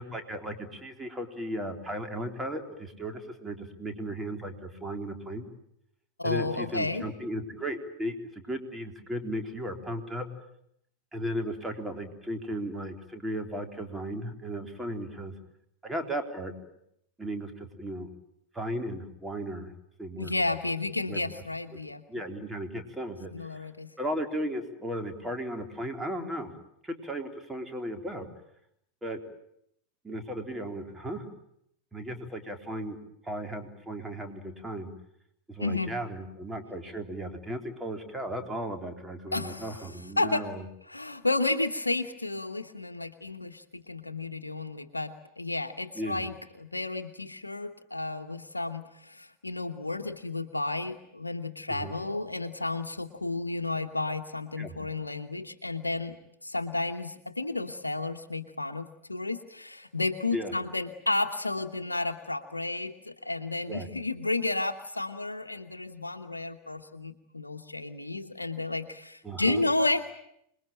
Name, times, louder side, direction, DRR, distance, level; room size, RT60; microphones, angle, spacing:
voice 1, 0.0-5.4 6.2-10.3 11.1-15.3 15.8-16.5 17.2-18.1 18.5-19.7 20.0-20.3 21.0-21.2 22.1-23.7 24.0-26.5 26.8-28.3 29.0-29.2 30.0-31.3 31.9-33.0 33.2-34.9 35.5-40.6 46.0-46.2 51.7-51.9 54.6-54.7 60.3-60.5 63.7-63.9 69.2-69.6, right 1 dB, 10° right, 4 dB, 3.9 m, -35 dB
voice 2, 6.2-7.1 20.2-22.0 23.3-23.9 35.6-35.9 39.3-39.9 40.2-40.5 40.9-56.2 56.4-70.0, left 2 dB, 90° left, 7 dB, 1.0 m, -32 dB
26.5 x 21.5 x 9.0 m, 0.75 s
figure-of-eight pair, 85°, 0 cm